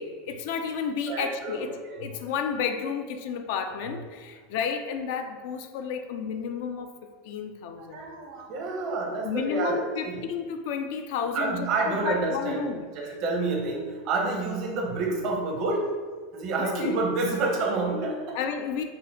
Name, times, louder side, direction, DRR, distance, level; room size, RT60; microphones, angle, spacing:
voice 1, 0.0-1.7 2.0-6.9 7.2-8.0 9.2-12.9 16.6-16.9 18.3-18.8, left 6 dB, 65° left, 6 dB, 0.3 m, -31 dB
voice 2, 1.1-2.2 7.8-10.2 11.3-12.7 12.9-15.9 16.3-18.4, right 3 dB, 55° right, 0 dB, 0.9 m, -29 dB
4.3 x 2.1 x 3.7 m, 1.5 s
hypercardioid pair, 95°, 0 cm